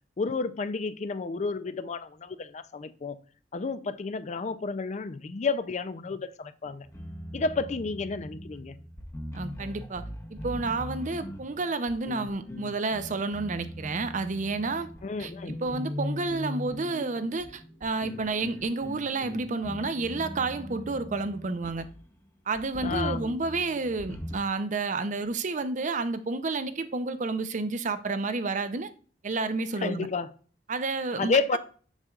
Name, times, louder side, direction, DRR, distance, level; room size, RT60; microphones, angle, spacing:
voice 1, 0.2-3.2 3.5-6.9 7.3-8.8 15.0-15.6 22.8-23.4 29.8-30.3 31.1-31.6, left 4 dB, 40° left, 0.4 m, -31 dB
sound 1, 6.6-22.0 22.5-24.4, left 1 dB, 15° left, 0.8 m, -40 dB
voice 2, 9.3-14.9 15.2-15.3 15.6-21.9 22.5-28.9 29.2-30.1 30.7-31.6, right 3 dB, 45° right, 0.6 m, -30 dB
7.3 x 6.5 x 2.4 m
head